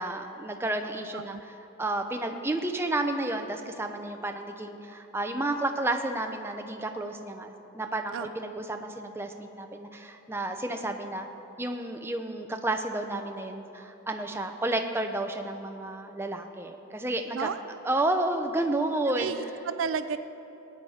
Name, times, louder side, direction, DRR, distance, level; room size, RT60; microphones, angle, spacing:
voice 1, 0.0-1.4 1.8-11.3 11.6-17.5 17.8-19.3, right 2 dB, 10° right, 5 dB, 0.6 m, -31 dB
voice 2, 19.2-20.2, right 6 dB, 70° right, 11 dB, 0.4 m, -32 dB
18.5 x 9.4 x 4.3 m, 3.0 s
head